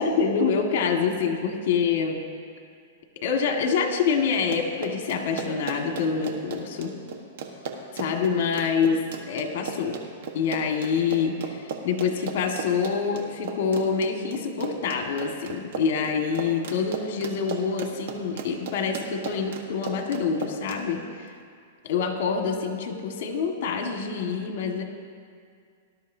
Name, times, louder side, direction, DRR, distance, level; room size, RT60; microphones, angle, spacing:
voice 1, 0.0-2.2 3.2-6.9 7.9-10.0 10.4-11.6 11.8-21.0 21.8-24.8, left 6 dB, 55° left, 3 dB, 1.7 m, -26 dB
Run, 4.3-20.8, right 5 dB, 65° right, 1.3 m, -36 dB
18.5 x 12.0 x 2.8 m, 2.2 s
hypercardioid pair, 150°, 0 cm